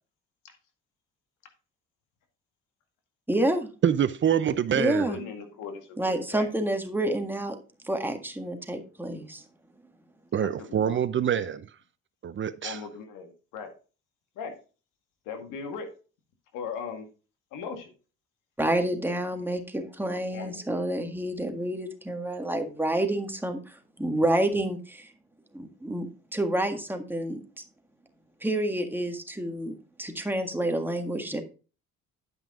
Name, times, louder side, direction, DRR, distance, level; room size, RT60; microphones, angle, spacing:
voice 1, 3.3-3.7 4.7-5.2 6.0-7.6 7.8-9.4 18.6-25.1 25.5-27.4 28.4-31.4, right 1 dB, 5° right, 1.7 m, -29 dB
voice 2, 3.8-5.1 10.3-11.7 12.2-12.8, right 9 dB, 40° right, 0.7 m, -25 dB
voice 3, 4.7-6.5 10.4-11.0 12.6-13.7 14.4-14.5 15.3-15.9 16.5-17.1 17.5-17.9 20.1-20.6, left 5 dB, 80° left, 2.0 m, -39 dB
10.5 x 5.7 x 3.7 m
supercardioid pair, 80°, 30 cm